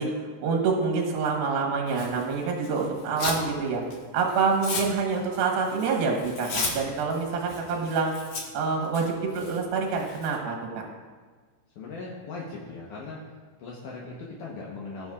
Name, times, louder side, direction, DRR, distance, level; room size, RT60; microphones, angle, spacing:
voice 1, 0.0-3.8 4.1-8.1 8.5-10.6, right 4 dB, 65° right, 1 dB, 2.6 m, -26 dB
Tearing, 1.9-3.5 3.8-10.4, left 4 dB, 65° left, 1.6 m, -36 dB
voice 2, 11.7-13.2 13.6-15.1, left 3 dB, 80° left, -4 dB, 1.8 m, -39 dB
19.0 x 7.0 x 2.4 m, 1.5 s
omnidirectional pair, 5.2 m